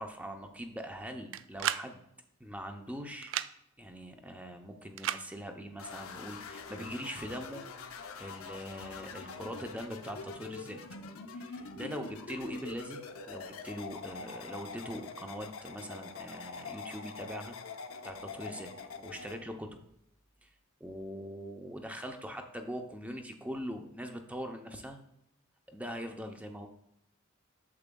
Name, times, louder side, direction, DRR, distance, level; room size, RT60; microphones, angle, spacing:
voice 1, 0.0-2.0 2.4-3.3 3.8-7.6 8.2-10.8 11.3-17.6 18.0-18.7 19.0-19.8 20.4-20.5 20.8-25.0 25.7-26.7, equal, 5° right, 5 dB, 0.6 m, -42 dB
sound 1, 1.3-1.9 3.2-3.5 5.0-5.2, right 11 dB, 65° right, 0.3 m, -33 dB
sound 2, 5.8-19.4, left 4 dB, 85° left, 0.7 m, -45 dB
8.6 x 7.1 x 2.3 m, 0.80 s
head